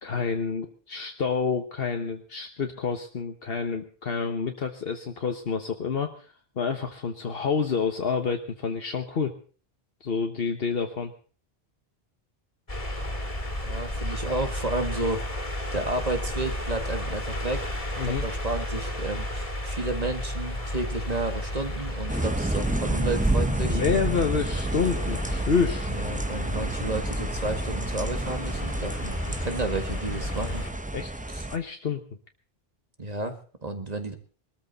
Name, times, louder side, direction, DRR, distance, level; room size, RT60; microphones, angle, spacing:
voice 1, 0.0-9.3 10.0-11.1 18.0-18.2 23.7-25.9 30.9-32.0, left 5 dB, 70° left, 5 dB, 1.4 m, -28 dB
sound 1, 12.7-30.7, left 1 dB, 35° left, 2.8 m, -33 dB
voice 2, 13.6-15.3 15.7-17.7 18.0-23.8 25.9-30.7 31.3-31.4 33.0-34.1, right 2 dB, 40° right, 7 dB, 1.9 m, -32 dB
sound 2, 22.1-31.6, right 1 dB, 10° right, 0.8 m, -30 dB
21.0 x 13.5 x 4.1 m, 0.41 s
omnidirectional pair, 1.0 m